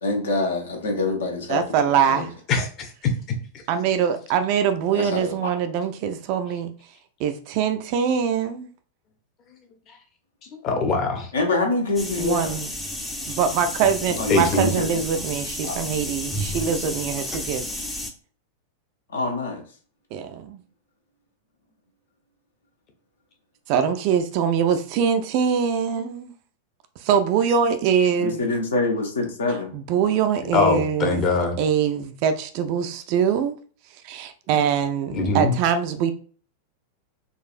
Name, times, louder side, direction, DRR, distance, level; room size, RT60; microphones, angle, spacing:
voice 1, 0.0-2.3 4.9-5.5 11.3-12.6 14.2-15.0 15.6-15.8 19.1-19.6 28.2-29.7, left 2 dB, 65° left, 0.9 m, -26 dB
voice 2, 1.5-2.3 3.7-6.7 7.2-8.7 12.2-12.7 13.3-17.6 20.1-20.6 23.7-26.3 27.0-28.4 29.7-31.3 31.6-33.5 34.0-36.1, right 7 dB, 45° right, 0.4 m, -23 dB
voice 3, 2.5-2.9 10.6-11.3 14.3-14.7 30.5-31.6 35.1-35.5, left 3 dB, 35° left, 0.8 m, -22 dB
sound 1, 12.0-18.1, left 1 dB, 10° left, 0.5 m, -32 dB
3.9 x 2.4 x 2.4 m
figure-of-eight pair, 90°, 0 cm